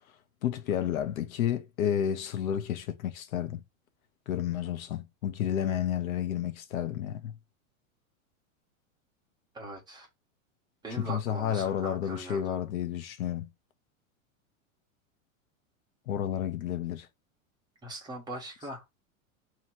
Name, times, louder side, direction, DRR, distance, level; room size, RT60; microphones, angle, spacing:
voice 1, 0.4-3.6 4.3-7.3 11.0-13.5 16.1-17.1, left 10 dB, 90° left, 0.9 m, -31 dB
voice 2, 9.5-10.1 10.8-12.5 17.8-18.8, right 1 dB, 10° right, 1.0 m, -40 dB
3.0 x 2.9 x 4.3 m
supercardioid pair, 150°, 41 cm